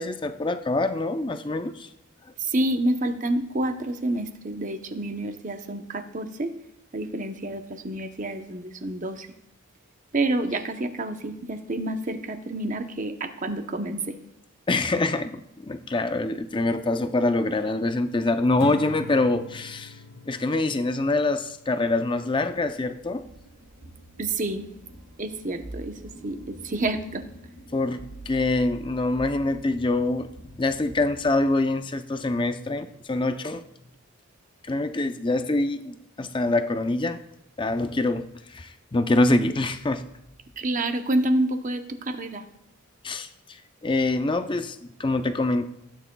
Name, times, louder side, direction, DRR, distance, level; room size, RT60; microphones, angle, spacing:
voice 1, 0.0-1.9 14.7-23.2 27.7-33.6 34.6-37.2 37.6-40.1 43.0-45.7, left 2 dB, 20° left, 9 dB, 0.5 m, -25 dB
voice 2, 2.4-6.5 6.9-9.3 10.1-14.2 24.2-24.7 25.2-27.2 40.6-42.4, right 1 dB, 35° right, 7 dB, 0.8 m, -28 dB
Acoustic guitar / Strum, 18.6-21.9, left 2 dB, 80° left, 0.7 m, -42 dB
sound 1, 22.7-31.5, right 1 dB, 80° right, 1.9 m, -45 dB
16.0 x 9.4 x 2.3 m, 0.80 s
head